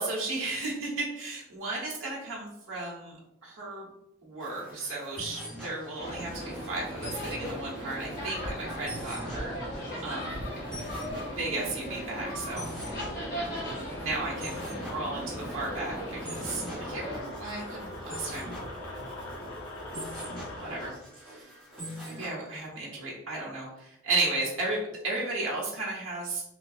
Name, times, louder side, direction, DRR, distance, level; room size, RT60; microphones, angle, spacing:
voice 1, 0.0-3.9 4.2-10.5 11.3-12.9 14.0-16.0 16.2-18.5 20.6-21.4 22.0-26.4, right 2 dB, 80° right, -4 dB, 1.0 m, -34 dB
sound 1, 4.4-22.3, equal, 5° left, 1.1 m, -44 dB
sound 2, 6.0-17.2, equal, 45° left, 1.2 m, -37 dB
sound 3, 8.2-20.9, left 1 dB, 85° left, 0.7 m, -42 dB
3.4 x 2.4 x 2.6 m, 0.79 s
head